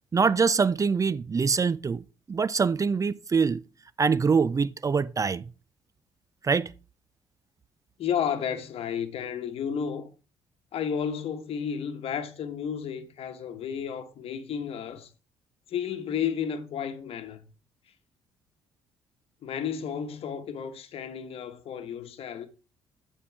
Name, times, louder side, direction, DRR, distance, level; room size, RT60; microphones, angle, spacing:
voice 1, 0.1-3.6 4.0-5.4 6.4-6.7, right 5 dB, 30° right, 0.4 m, -24 dB
voice 2, 8.0-10.1 10.7-15.1 15.7-17.5 19.4-22.5, left 8 dB, 65° left, 1.1 m, -32 dB
9.0 x 4.5 x 4.5 m
hypercardioid pair, 55°, 11 cm